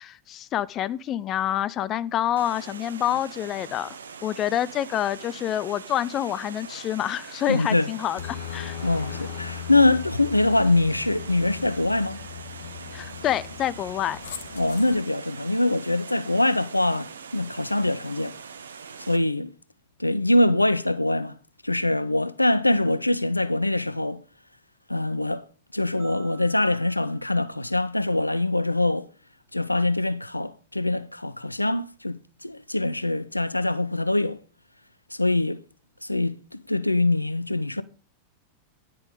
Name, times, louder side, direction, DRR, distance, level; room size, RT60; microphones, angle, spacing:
voice 1, 0.0-4.0 4.2-8.8 12.9-14.2, left 11 dB, 30° left, 0.4 m, -27 dB
Water, 2.4-19.2, right 6 dB, 70° right, 0.8 m, -42 dB
voice 2, 7.5-7.9 8.8-12.2 14.5-18.4 19.1-19.5 20.0-21.3 21.6-24.2 24.9-25.4 25.7-29.1 29.5-34.4 35.1-35.6 36.0-37.8, left 2 dB, 85° left, 0.5 m, -23 dB
Aircraft, 8.2-15.0, left 10 dB, 60° left, 1.2 m, -38 dB
sound 1, 26.0-28.4, right 11 dB, 15° right, 6.8 m, -54 dB
10.5 x 6.8 x 5.1 m
figure-of-eight pair, 90°, 0 cm